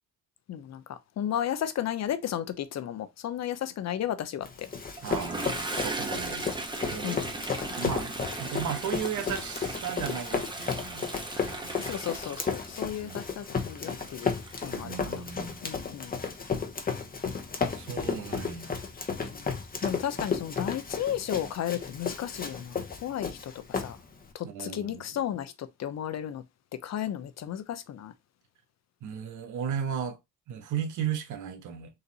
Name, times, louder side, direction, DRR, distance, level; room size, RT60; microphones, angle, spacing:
voice 1, 0.5-4.7 7.0-7.3 11.8-14.3 14.6-15.2 15.6-16.1 19.3-19.5 19.8-24.0 24.3-26.4 26.8-28.1, left 10 dB, 60° left, 0.7 m, -34 dB
Run, 4.4-24.3, left 5 dB, 30° left, 1.0 m, -34 dB
Toilet flush, 5.0-15.5, right 2 dB, 15° right, 1.0 m, -37 dB
voice 2, 5.0-6.5 6.8-7.2 7.8-11.1 11.4-11.9 13.0-13.2 14.7-15.6 17.7-18.8 24.4-25.0 29.0-30.2 30.5-31.9, right 8 dB, 75° right, 1.1 m, -35 dB
4.1 x 2.6 x 4.0 m
cardioid pair, 90°, 30 cm